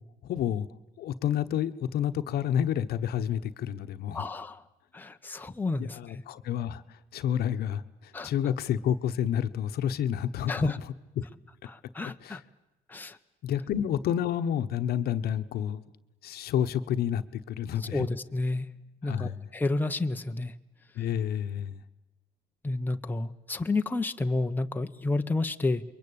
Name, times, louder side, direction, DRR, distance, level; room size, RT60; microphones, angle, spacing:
voice 1, 0.2-0.7 1.0-4.2 5.8-6.8 7.1-10.8 11.2-11.3 12.2-12.4 13.4-15.8 16.2-18.1 19.0-19.4 21.0-21.8, left 9 dB, 65° left, 1.1 m, -29 dB
voice 2, 4.1-4.6 4.9-6.2 8.1-8.3 10.5-10.8 11.7-12.4 12.9-13.2 17.8-18.7 19.0-20.5 22.6-25.8, left 2 dB, 10° left, 0.9 m, -30 dB
28.0 x 23.0 x 8.7 m
cardioid pair, 110°, 17 cm